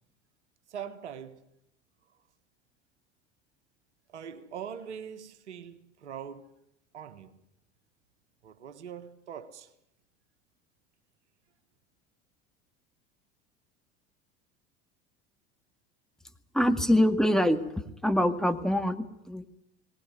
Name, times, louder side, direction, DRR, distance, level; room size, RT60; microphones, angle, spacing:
voice 1, 0.7-1.4 4.1-6.5 6.9-7.3 8.4-9.7, right 8 dB, 90° right, 1.4 m, -42 dB
voice 2, 16.5-19.5, left 1 dB, ahead, 2.0 m, -25 dB
19.5 x 19.0 x 9.6 m
hypercardioid pair, 80°, 33 cm